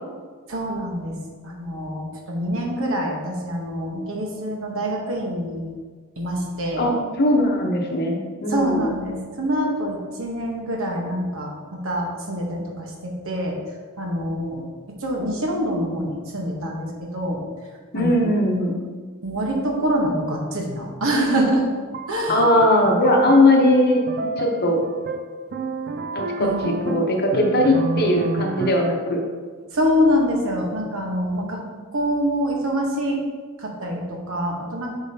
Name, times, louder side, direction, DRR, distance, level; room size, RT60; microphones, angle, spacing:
voice 1, 0.5-1.2 1.4-5.7 6.2-6.9 8.5-13.6 14.0-14.6 15.0-17.4 17.9-18.3 19.2-21.6 22.1-22.5 26.4-26.7 29.7-31.6 31.9-33.2 33.6-34.9, equal, 65° right, 0 dB, 1.1 m, -25 dB
voice 2, 7.2-8.9 17.9-18.8 22.3-24.8 26.1-29.2, left 1 dB, 45° left, 1 dB, 0.9 m, -19 dB
sound 1, 21.9-29.0, right 3 dB, 45° right, 0.4 m, -30 dB
7.4 x 5.0 x 2.9 m, 1.5 s
head